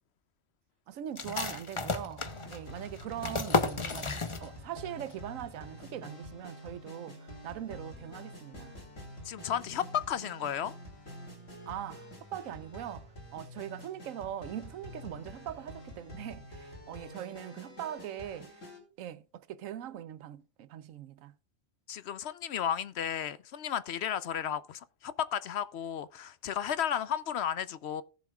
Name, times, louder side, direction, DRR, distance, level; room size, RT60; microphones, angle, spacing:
voice 1, 0.9-4.1 4.4-8.7 11.7-18.6 19.0-21.3, right 11 dB, 90° right, 1.1 m, -41 dB
sound 1, 1.2-4.8 5.1-5.2 5.6-6.1, left 3 dB, 30° left, 0.8 m, -33 dB
sound 2, 2.2-18.8, equal, 80° left, 3.7 m, -48 dB
voice 2, 9.2-10.7 21.9-28.0, left 9 dB, 65° left, 0.8 m, -33 dB
18.0 x 7.3 x 2.3 m
omnidirectional pair, 1.3 m